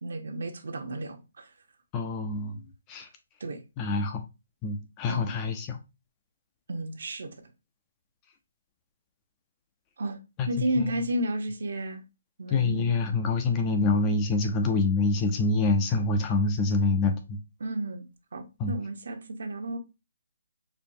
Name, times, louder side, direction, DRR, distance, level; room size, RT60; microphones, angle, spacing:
voice 1, 0.0-1.5 3.4-3.6 5.1-5.3 6.7-7.4 10.0-10.2 10.5-12.0 12.4-12.9 17.6-19.8, right 1 dB, 60° right, 0.8 m, -32 dB
voice 2, 1.9-2.6 2.9-3.1 3.8-4.2 4.6-5.8 10.4-10.5 10.8-10.9 12.5-17.4 18.6-18.7, left 3 dB, 15° left, 0.3 m, -26 dB
4.4 x 2.7 x 2.6 m
hypercardioid pair, 170°, 0 cm